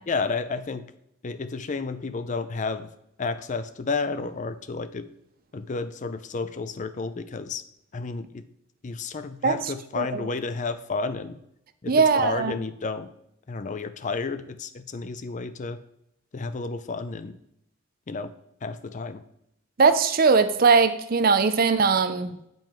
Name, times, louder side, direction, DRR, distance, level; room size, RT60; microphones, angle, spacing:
voice 1, 0.1-0.8 1.2-2.9 3.2-5.1 5.5-7.6 7.9-8.4 8.8-11.4 11.8-13.1 13.5-15.8 16.3-17.4 18.1-18.3 18.6-19.2, left 4 dB, 40° left, 11 dB, 0.5 m, -31 dB
voice 2, 9.4-10.3 11.9-12.5 19.8-22.3, right 5 dB, 45° right, 11 dB, 0.6 m, -20 dB
9.1 x 5.3 x 4.5 m, 0.76 s
head